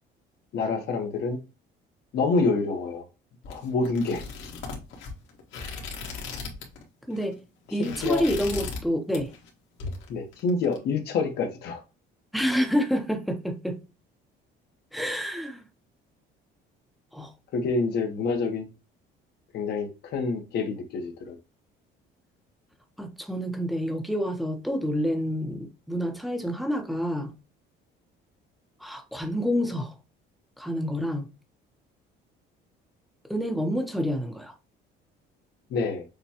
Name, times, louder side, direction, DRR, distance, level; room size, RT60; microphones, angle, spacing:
voice 1, 0.5-1.4 2.1-3.0 3.5-4.2 7.8-8.3 10.1-11.8 17.5-18.6 19.5-21.4 35.7-36.0, left 4 dB, 55° left, 0.9 m, -27 dB
sound 1, 3.4-6.8 7.1-7.3 7.7-8.9 9.1-9.5 9.8-10.8, left 4 dB, 75° left, 1.5 m, -37 dB
voice 2, 7.1-7.4 7.7-9.3 12.3-13.8 14.9-15.6 17.1-17.3 23.0-27.3 28.8-29.9 30.6-31.3 33.3-34.5, equal, ahead, 0.6 m, -28 dB
6.7 x 2.2 x 2.8 m
cardioid pair, 170°, 20 cm